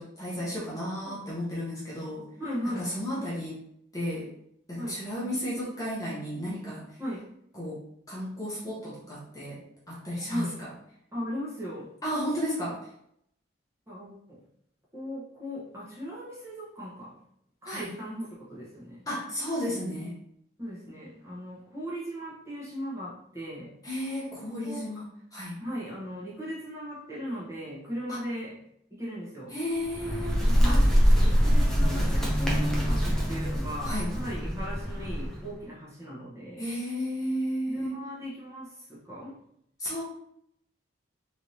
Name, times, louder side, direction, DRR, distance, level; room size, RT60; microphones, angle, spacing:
voice 1, 0.0-2.3 2.6-3.6 3.9-4.3 4.7-6.8 7.5-7.8 8.1-9.6 9.9-10.7 12.0-12.8 17.7-17.9 19.1-20.2 23.8-25.6 28.1-28.2 29.5-30.8 33.8-34.1 36.6-38.0 39.8-40.0, equal, 20° left, -7 dB, 0.8 m, -33 dB
voice 2, 2.4-2.9 4.8-5.0 7.0-7.2 10.3-10.6 11.1-11.9 13.9-14.4 14.9-17.2 17.6-19.0 20.6-23.7 24.6-24.9 25.6-28.6 28.9-29.5 30.4-30.8 31.1-36.6 37.7-39.4, equal, 15° right, -7 dB, 1.0 m, -38 dB
Bird, 29.8-35.5, equal, 5° left, 0.5 m, -24 dB
3.4 x 3.0 x 2.7 m, 0.72 s
head